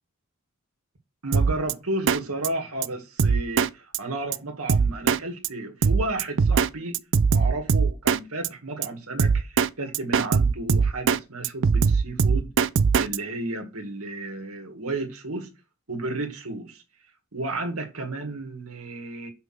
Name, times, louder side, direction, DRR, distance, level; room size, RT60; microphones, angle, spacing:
voice 1, 1.2-7.0 7.3-12.5 13.0-15.5 15.9-16.8 17.3-19.3, right 2 dB, 80° right, 2.0 m, -32 dB
Drum kit, 1.3-1.7 2.1-2.2 2.4-2.5 2.8-2.9 3.2-3.7 3.9-4.0 4.3-4.4 4.7-5.2 5.4-5.5 5.8-6.7 6.9-8.2 8.4-8.5 8.8-8.9 9.2-9.7 9.9-11.2 11.4-13.2, right 5 dB, 60° right, 0.4 m, -20 dB
5.9 x 5.5 x 5.9 m
head